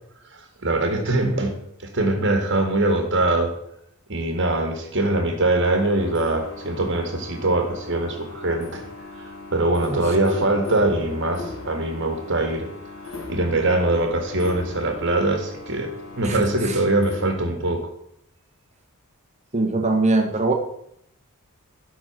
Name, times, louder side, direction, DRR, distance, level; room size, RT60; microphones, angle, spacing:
voice 1, 0.6-1.6 1.8-3.5 4.1-8.8 9.5-12.7 13.3-17.9, right 2 dB, 60° right, 4 dB, 1.8 m, -22 dB
sound 1, 5.6-17.3, left 3 dB, 70° left, 1.8 m, -39 dB
voice 2, 19.5-20.5, right 2 dB, 30° right, 3 dB, 1.5 m, -22 dB
11.5 x 4.5 x 6.0 m, 0.74 s
head